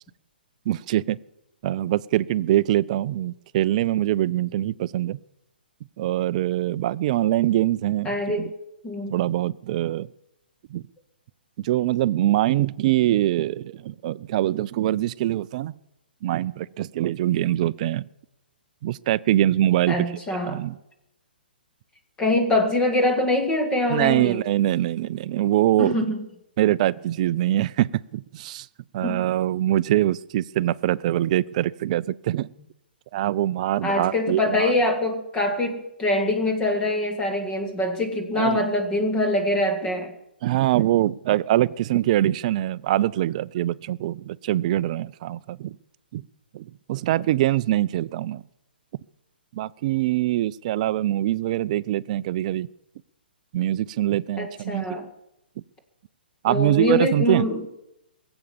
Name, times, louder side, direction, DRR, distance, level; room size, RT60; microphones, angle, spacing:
voice 1, 0.7-1.2 1.6-5.2 6.0-8.5 9.1-10.1 10.7-10.8 11.6-15.7 16.2-18.0 18.8-20.0 20.5-20.8 23.9-26.0 26.6-28.7 28.9-32.5 33.1-34.7 38.4-38.6 40.4-45.8 46.1-46.2 46.5-48.4 49.5-52.7 53.5-54.9 56.4-57.5, right 14 dB, 45° right, 18 dB, 0.5 m, -23 dB
voice 2, 8.1-8.5 8.8-9.2 19.9-20.6 22.2-24.4 25.8-26.2 29.0-29.3 33.8-40.1 54.4-55.1 56.5-57.6, left 1 dB, 15° left, 5 dB, 1.8 m, -24 dB
21.0 x 8.1 x 7.2 m, 0.87 s
hypercardioid pair, 130°, 6 cm